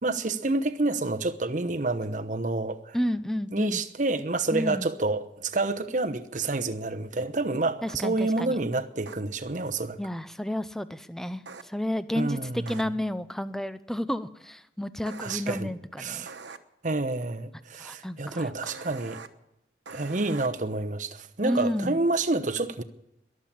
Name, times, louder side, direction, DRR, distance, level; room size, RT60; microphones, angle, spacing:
voice 1, 0.0-3.0 3.5-10.0 12.1-12.8 15.2-15.7 16.0-16.3 16.8-19.2 19.9-22.8, right 2 dB, 45° right, 0.9 m, -28 dB
voice 2, 2.9-3.8 4.5-4.9 7.8-8.6 10.0-16.3 17.8-18.5 21.4-22.0, left 1 dB, ahead, 0.5 m, -31 dB
sound 1, 7.9-8.0 9.1-9.2 11.5-11.6 12.7-12.8 15.1-15.4 16.3-16.6 18.7-19.3 19.9-20.5, right 4 dB, 90° right, 1.1 m, -42 dB
22.0 x 7.6 x 8.7 m
head